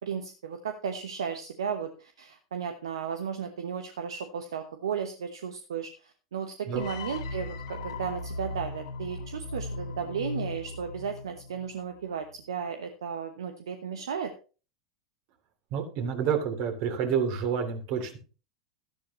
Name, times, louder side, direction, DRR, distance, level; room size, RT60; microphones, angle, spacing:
voice 1, 0.0-14.3, right 7 dB, 70° right, 7 dB, 1.1 m, -35 dB
sound 1, 6.7-11.8, left 2 dB, 65° left, 1.9 m, -38 dB
voice 2, 15.7-18.2, right 7 dB, 50° right, 5 dB, 3.0 m, -29 dB
13.0 x 11.0 x 3.1 m, 0.36 s
figure-of-eight pair, 90°, 3 cm